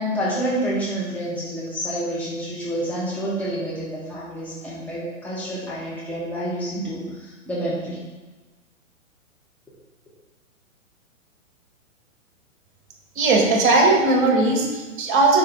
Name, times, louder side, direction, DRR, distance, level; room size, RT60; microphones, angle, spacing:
voice 1, 0.0-8.0, right 1 dB, 5° left, -7 dB, 1.0 m, -28 dB
voice 2, 13.1-15.4, right 3 dB, 40° right, 1 dB, 1.6 m, -18 dB
4.9 x 4.8 x 4.8 m, 1.2 s
hypercardioid pair, 120°, 39 cm